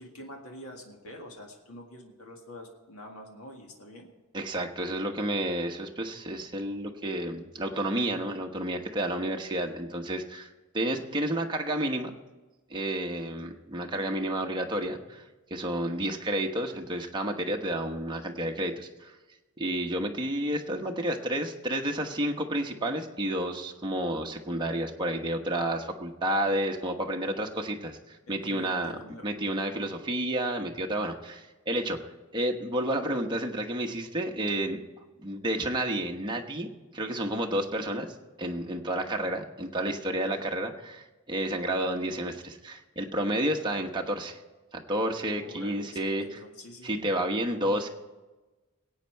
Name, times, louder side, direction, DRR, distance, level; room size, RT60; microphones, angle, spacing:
voice 1, 0.0-4.1 28.3-29.2 45.4-46.9, left 1 dB, 80° left, 1 dB, 2.0 m, -46 dB
voice 2, 4.3-12.1 12.7-15.2 15.5-19.1 19.6-28.9 29.2-32.0 32.3-34.8 35.2-44.4 44.7-46.4 46.8-47.9, right 1 dB, 20° right, 1 dB, 1.1 m, -31 dB
21.0 x 8.7 x 4.6 m, 1.2 s
head